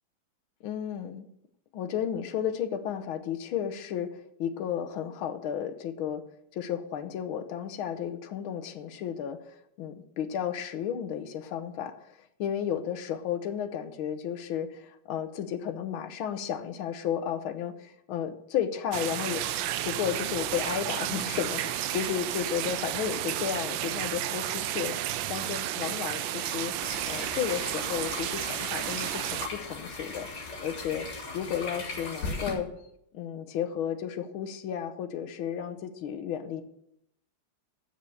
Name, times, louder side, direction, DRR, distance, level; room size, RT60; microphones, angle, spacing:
voice 1, 0.6-1.3 1.7-6.2 6.5-19.5 19.8-26.7 27.1-31.1 31.3-32.7 33.1-36.6, left 9 dB, 75° left, 9 dB, 1.6 m, -33 dB
sound 1, 18.9-29.5, right 12 dB, 75° right, 1.2 m, -32 dB
sound 2, 26.8-32.5, left 3 dB, 50° left, 3.0 m, -38 dB
7.7 x 7.3 x 8.3 m, 0.75 s
omnidirectional pair, 2.4 m